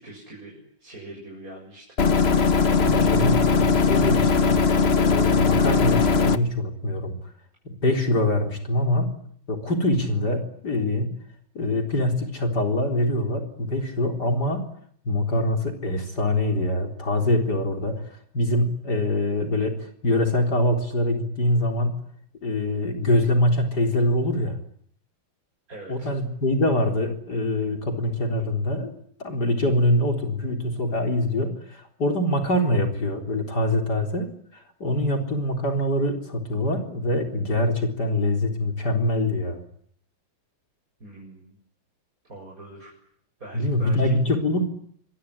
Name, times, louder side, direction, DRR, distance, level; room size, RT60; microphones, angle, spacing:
voice 1, 0.0-3.2 25.7-26.1 41.0-41.6 42.3-42.9 43.4-44.2, right 1 dB, 40° right, -1 dB, 7.8 m, -43 dB
sound 1, 2.0-6.4, left 5 dB, 35° left, 1.3 m, -19 dB
voice 2, 2.8-7.1 7.6-9.1 9.5-11.1 11.5-14.6 15.1-18.0 18.3-22.0 22.4-24.6 25.9-28.9 29.2-39.6 43.5-44.7, left 1 dB, 50° left, 5 dB, 4.4 m, -24 dB
27.0 x 22.5 x 9.8 m, 0.64 s
omnidirectional pair, 2.2 m